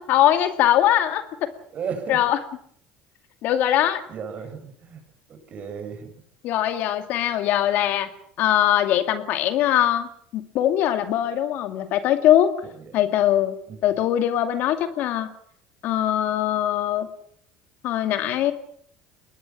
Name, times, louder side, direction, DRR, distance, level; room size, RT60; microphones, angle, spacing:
voice 1, 0.0-1.5 2.1-2.4 3.4-4.0 6.4-8.1 8.4-10.1 10.3-12.6 12.9-13.5 13.8-15.3 15.8-17.1 17.8-18.5, left 12 dB, 65° left, 8 dB, 2.3 m, -21 dB
voice 2, 1.7-2.2 4.1-5.0 5.3-6.1 13.7-13.8, right 6 dB, 45° right, 6 dB, 7.0 m, -34 dB
22.5 x 19.5 x 7.4 m, 0.64 s
supercardioid pair, 90°, 3 cm